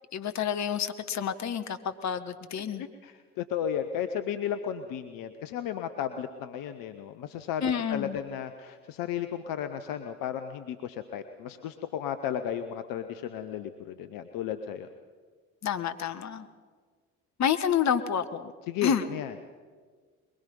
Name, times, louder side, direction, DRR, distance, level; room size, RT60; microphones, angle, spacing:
voice 1, 0.1-2.8 7.6-8.2 15.6-16.5 17.4-18.5 18.8-19.0, left 8 dB, 45° left, 10 dB, 1.5 m, -29 dB
voice 2, 2.8-14.9 18.7-19.3, left 9 dB, 65° left, 9 dB, 1.1 m, -34 dB
22.5 x 22.0 x 5.4 m, 1.5 s
hypercardioid pair, 55°, 37 cm